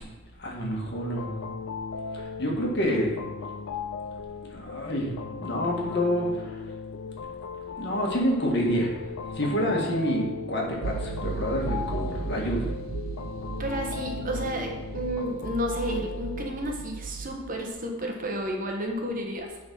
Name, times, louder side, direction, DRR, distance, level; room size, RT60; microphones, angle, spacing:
voice 1, 0.4-1.2 2.1-3.2 4.5-5.1 5.4-6.6 7.8-8.9 9.3-12.7, equal, 55° left, -1 dB, 1.6 m, -27 dB
sound 1, 0.9-16.8, left 5 dB, 85° left, 0.4 m, -38 dB
sound 2, 10.8-17.4, right 4 dB, 85° right, 0.6 m, -35 dB
voice 2, 13.6-19.6, equal, 40° right, 1 dB, 1.2 m, -31 dB
9.6 x 4.0 x 5.5 m, 1.1 s
head